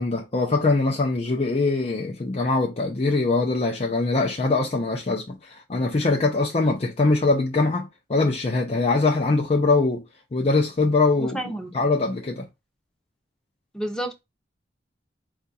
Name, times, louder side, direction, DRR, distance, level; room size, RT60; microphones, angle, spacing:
voice 1, 0.0-10.0 10.3-11.4 11.7-12.5, left 3 dB, 35° left, 0.5 m, -22 dB
voice 2, 11.2-11.7 13.7-14.2, right 1 dB, 5° left, 0.7 m, -30 dB
4.6 x 2.4 x 4.0 m
head